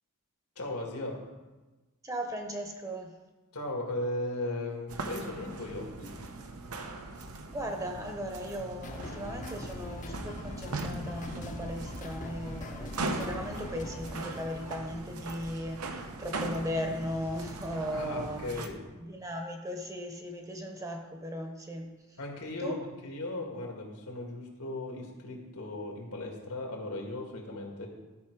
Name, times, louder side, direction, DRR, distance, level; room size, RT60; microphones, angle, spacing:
voice 1, 0.6-1.2 3.5-6.2 17.9-18.8 22.2-27.9, left 2 dB, 80° left, 1 dB, 2.0 m, -37 dB
voice 2, 2.0-3.1 7.5-18.6 19.0-21.9 22.6-22.8, equal, 15° right, 3 dB, 1.0 m, -37 dB
sound 1, 4.9-18.7, right 2 dB, 75° right, 0.9 m, -40 dB
sound 2, 8.8-14.8, left 2 dB, 35° left, 0.8 m, -43 dB
12.0 x 5.5 x 4.7 m, 1.2 s
head